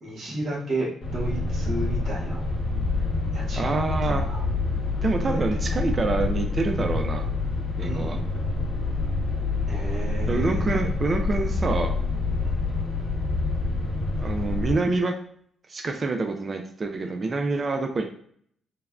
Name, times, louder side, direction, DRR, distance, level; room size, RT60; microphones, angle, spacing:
voice 1, 0.0-2.4 3.3-3.7 4.0-4.4 5.3-5.4 7.8-8.2 9.7-10.7 12.4-12.6, right 1 dB, 60° right, -5 dB, 1.4 m, -32 dB
sound 1, 1.0-14.7, left 3 dB, 65° left, 0.9 m, -27 dB
voice 2, 3.6-4.2 5.0-7.3 7.8-8.2 10.3-11.9 14.2-15.1 15.7-18.0, right 3 dB, 35° right, 4 dB, 0.3 m, -26 dB
3.2 x 2.2 x 2.4 m, 0.63 s
cardioid pair, 90°, 0 cm